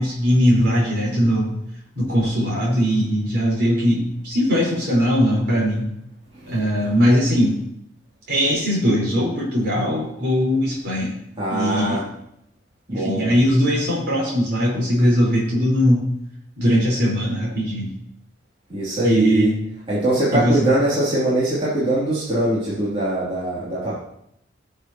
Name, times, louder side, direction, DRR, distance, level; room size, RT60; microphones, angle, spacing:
voice 1, 0.0-1.5 1.9-5.9 6.5-7.6 8.3-11.1 11.5-12.0 12.9-16.1 16.6-17.9 19.0-19.5 20.3-20.6, equal, 60° right, -4 dB, 4.7 m, -20 dB
voice 2, 11.4-12.0 12.9-13.3 18.7-19.5 19.9-24.0, right 1 dB, 30° right, -9 dB, 2.9 m, -22 dB
17.0 x 6.7 x 3.0 m, 0.75 s
head